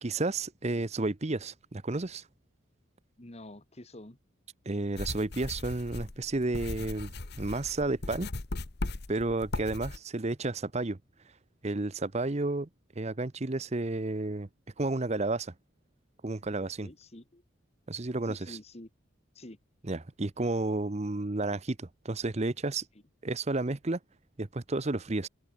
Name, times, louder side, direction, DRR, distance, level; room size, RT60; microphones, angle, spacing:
voice 1, 0.0-2.3 4.7-8.3 9.1-11.0 11.6-12.7 13.0-14.5 14.8-15.5 16.2-16.9 17.9-18.6 19.8-22.9 23.2-24.0 24.4-25.3, right 2 dB, 30° right, 0.8 m, -31 dB
voice 2, 3.2-4.2 16.8-17.4 18.3-18.9 19.3-19.6, left 1 dB, 30° left, 1.6 m, -47 dB
sound 1, 5.0-10.0, left 2 dB, 50° left, 1.1 m, -38 dB
head